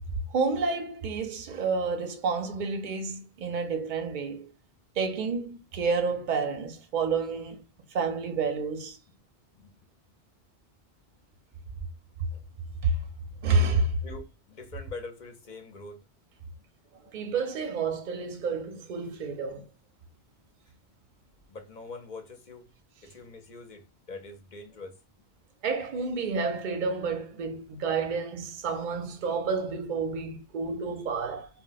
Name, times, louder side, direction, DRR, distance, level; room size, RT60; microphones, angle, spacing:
voice 1, 0.3-4.5 5.0-7.6 7.9-9.0 12.8-13.0 13.4-14.0 17.1-19.6 25.6-31.5, right 4 dB, 50° right, 0.7 m, -29 dB
voice 2, 14.0-16.0 21.5-22.6 23.0-25.0, left 3 dB, 50° left, 0.7 m, -43 dB
2.2 x 2.1 x 3.8 m
omnidirectional pair, 1.1 m